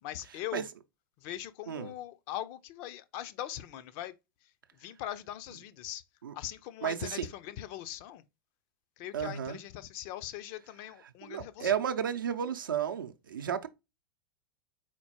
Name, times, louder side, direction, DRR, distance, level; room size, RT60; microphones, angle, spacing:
voice 1, 0.0-0.7 1.2-4.1 4.8-6.0 6.3-8.2 9.0-11.7, left 13 dB, 40° left, 0.5 m, -41 dB
voice 2, 6.8-7.3 9.1-9.6 11.2-13.7, right 8 dB, 70° right, 0.6 m, -33 dB
4.3 x 4.2 x 2.8 m
figure-of-eight pair, 90°, 11 cm